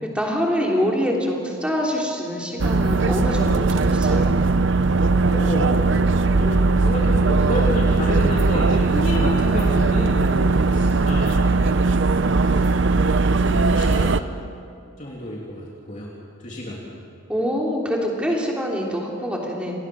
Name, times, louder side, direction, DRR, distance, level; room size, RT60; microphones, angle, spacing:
voice 1, 0.1-4.3 17.3-19.7, equal, 5° right, -2 dB, 3.3 m, -25 dB
sound 1, 2.6-14.2, right 3 dB, 60° right, 0.7 m, -19 dB
voice 2, 5.3-6.0 6.4-11.8 12.4-12.6 13.4-14.2 15.0-16.1 16.4-16.8, left 1 dB, 35° left, -4 dB, 3.0 m, -29 dB
28.0 x 19.5 x 6.4 m, 2.5 s
head